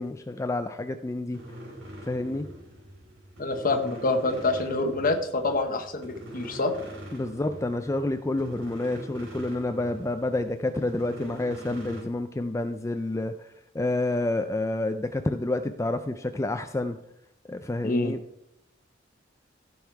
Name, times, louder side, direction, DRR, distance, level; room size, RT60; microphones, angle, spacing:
voice 1, 0.0-1.4 2.0-2.5 7.1-13.3 13.7-17.0 17.5-18.2, left 2 dB, 15° left, 8 dB, 0.4 m, -29 dB
sound 1, 1.3-12.0, equal, 90° right, 4.4 m, -43 dB
voice 2, 3.4-6.7 17.8-18.1, left 2 dB, 45° left, 4 dB, 1.0 m, -26 dB
16.5 x 5.5 x 4.6 m, 0.81 s
head